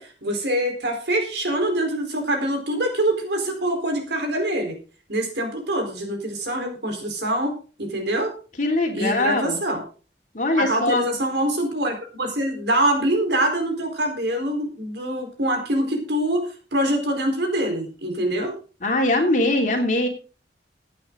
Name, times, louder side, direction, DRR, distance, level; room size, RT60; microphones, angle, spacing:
voice 1, 0.0-4.7 5.1-8.3 8.9-9.8 10.6-18.5, right 1 dB, 70° right, 5 dB, 4.3 m, -24 dB
voice 2, 8.6-9.6 10.3-11.0 18.8-20.1, left 2 dB, 45° left, 2 dB, 3.1 m, -21 dB
16.0 x 9.0 x 3.9 m, 0.36 s
head